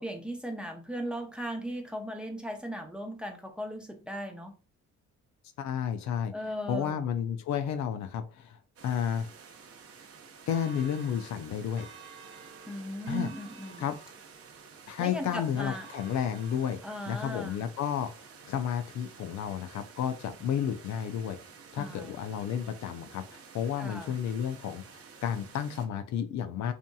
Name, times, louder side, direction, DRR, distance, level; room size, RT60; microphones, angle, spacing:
voice 1, 0.0-4.5 6.3-7.1 12.7-13.9 15.0-15.9 16.8-17.7 21.8-22.2 23.8-24.2, equal, 5° right, 3 dB, 0.6 m, -37 dB
voice 2, 5.6-6.3 6.7-8.6 8.8-9.3 10.5-11.9 13.1-13.3 13.8-14.0 14.9-16.8 17.1-18.1 18.4-21.4 21.7-26.7, left 8 dB, 70° left, 9 dB, 0.5 m, -32 dB
sound 1, 8.8-25.9, right 6 dB, 50° right, 0.6 m, -52 dB
Church bell, 10.5-17.0, right 4 dB, 80° right, 1.0 m, -53 dB
2.7 x 2.5 x 2.2 m, 0.32 s
cardioid pair, 90°, 30 cm